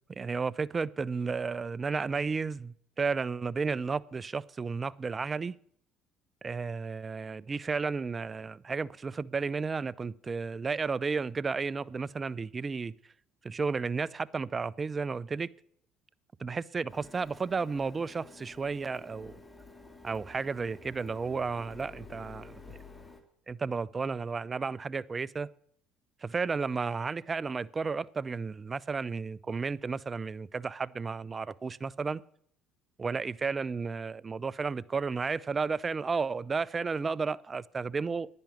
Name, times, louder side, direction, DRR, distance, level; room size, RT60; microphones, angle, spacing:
voice 1, 0.1-5.6 6.4-12.9 13.4-15.5 16.4-19.4 20.0-22.8 23.5-25.5 26.2-32.2 33.0-38.3, right 4 dB, 30° right, 0.4 m, -33 dB
Printer, 16.9-23.2, left 3 dB, 20° left, 2.2 m, -51 dB
11.0 x 10.5 x 7.1 m
supercardioid pair, 75°, 0 cm